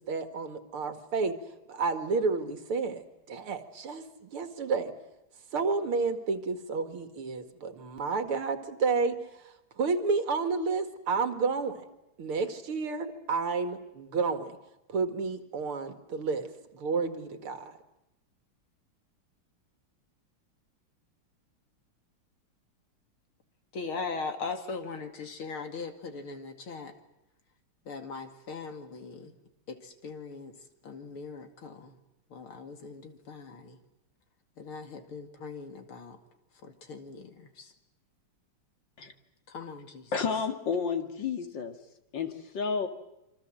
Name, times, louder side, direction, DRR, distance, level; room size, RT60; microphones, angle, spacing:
voice 1, 0.1-1.3 1.7-4.9 5.5-9.2 9.4-11.8 12.2-14.5 14.9-17.7, right 4 dB, 80° right, 8 dB, 2.8 m, -31 dB
voice 2, 23.7-26.9 27.8-29.4 29.7-32.0 32.3-33.8 34.6-36.2 36.6-37.7 39.5-40.1, left 4 dB, 75° left, 6 dB, 3.2 m, -40 dB
voice 3, 40.1-41.8 42.1-42.9, left 5 dB, 60° left, 7 dB, 2.6 m, -31 dB
27.0 x 25.0 x 7.6 m, 0.89 s
omnidirectional pair, 2.4 m